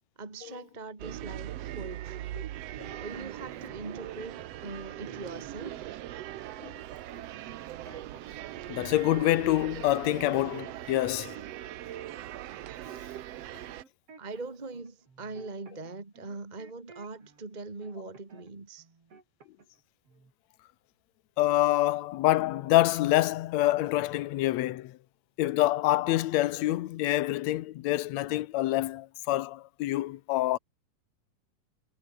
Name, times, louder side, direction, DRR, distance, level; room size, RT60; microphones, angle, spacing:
voice 1, 0.2-2.3 3.0-5.8 14.2-18.9, right 3 dB, 25° right, 1.0 m, -42 dB
sound 1, 1.0-13.8, right 13 dB, 85° right, 1.4 m, -40 dB
sound 2, 2.7-3.8 4.4-4.7 5.0-6.3 6.9-8.5 8.8-9.8 10.0-12.3 12.5-17.4 17.8-18.5 18.8-19.8 20.1-20.3, right 4 dB, 40° right, 5.5 m, -54 dB
voice 2, 8.7-11.4 21.4-25.0 25.4-30.6, left 16 dB, 80° left, 1.6 m, -26 dB
omnidirectional pair, 4.2 m